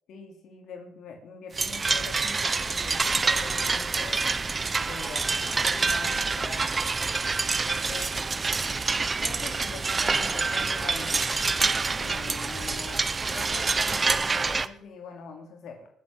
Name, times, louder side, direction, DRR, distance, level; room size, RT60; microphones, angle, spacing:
voice 1, 0.1-4.3 4.5-6.7 7.4-8.3 9.2-11.3 11.9-15.9, left 5 dB, 80° left, 3 dB, 2.8 m, -43 dB
sound 1, 1.5-14.7, right 4 dB, 30° right, 1.0 m, -27 dB
21.0 x 7.5 x 7.6 m, 0.72 s
cardioid pair, 90°, 0 cm